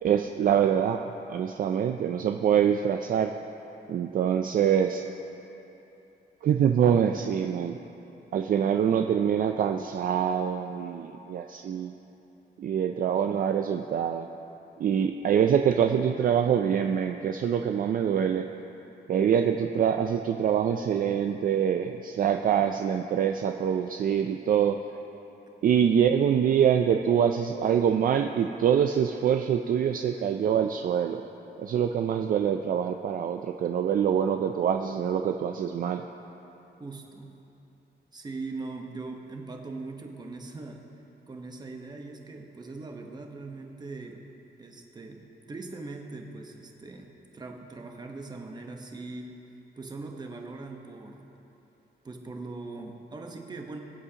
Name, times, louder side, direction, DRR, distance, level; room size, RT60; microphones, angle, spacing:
voice 1, 0.0-3.3 3.9-5.1 6.4-7.8 8.3-11.9 12.6-14.3 14.8-18.5 19.1-24.8 25.6-31.2 31.6-36.0, right 8 dB, 50° right, 5 dB, 0.4 m, -25 dB
voice 2, 36.8-37.3 38.1-40.8 41.3-44.2 44.6-45.2 45.5-49.3 49.8-51.2 52.0-53.8, right 3 dB, 25° right, 2 dB, 1.0 m, -40 dB
22.0 x 8.2 x 2.9 m, 3.0 s
wide cardioid pair, 145°, 18 cm